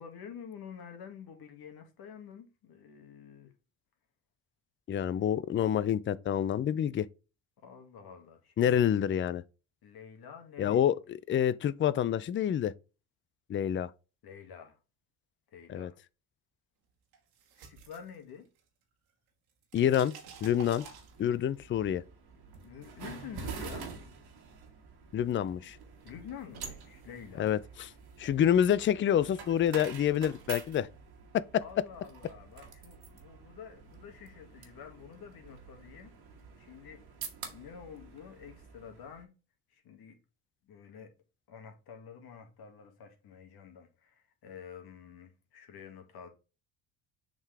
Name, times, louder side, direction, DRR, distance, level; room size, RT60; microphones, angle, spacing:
voice 1, 0.0-3.5 7.6-8.8 9.8-11.2 14.2-14.8 15.5-16.0 17.6-18.5 22.6-23.9 26.0-27.5 31.6-36.2 36.6-37.0 37.5-39.3 39.7-40.2 40.6-41.1 41.5-46.3, left 7 dB, 60° left, 1.7 m, -48 dB
voice 2, 4.9-7.1 8.6-9.4 10.6-10.9 11.3-12.7 13.5-13.9 15.7-15.9 19.7-20.2 20.4-20.9 21.2-22.0 25.1-25.8 27.4-27.9 28.2-30.9 31.3-31.6, left 10 dB, 30° left, 0.4 m, -27 dB
sound 1, 17.1-18.8 19.1-21.5, right 6 dB, 85° right, 1.8 m, -50 dB
sound 2, 20.2-39.2, right 5 dB, 60° right, 1.7 m, -48 dB
7.1 x 3.8 x 3.5 m
hypercardioid pair, 60°, 43 cm